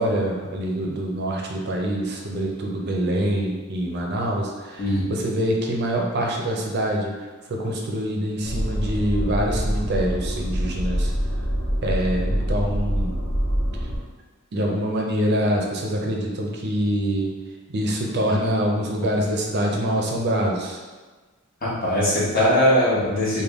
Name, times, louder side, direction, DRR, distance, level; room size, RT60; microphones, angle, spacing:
voice 1, 0.0-11.1 11.8-13.2 14.5-17.4 17.7-20.8, equal, 55° right, 0 dB, 0.5 m, -25 dB
sound 1, 8.4-14.0, equal, 65° left, 1.2 m, -25 dB
voice 2, 21.6-23.4, equal, 45° left, -8 dB, 1.2 m, -20 dB
3.4 x 2.2 x 3.5 m, 1.3 s
head